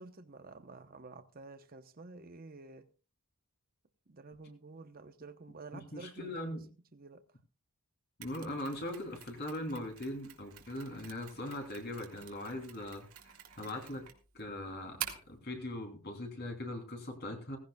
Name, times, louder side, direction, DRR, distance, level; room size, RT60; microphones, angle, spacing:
voice 1, 0.0-2.9 4.1-6.6 6.9-7.2, right 3 dB, 40° right, 0.9 m, -50 dB
voice 2, 5.9-6.7 8.2-13.1 13.5-14.0 14.3-17.6, left 1 dB, 45° left, 3.3 m, -40 dB
Mechanisms, 8.2-15.4, right 10 dB, 75° right, 2.4 m, -48 dB
18.0 x 16.0 x 2.3 m
head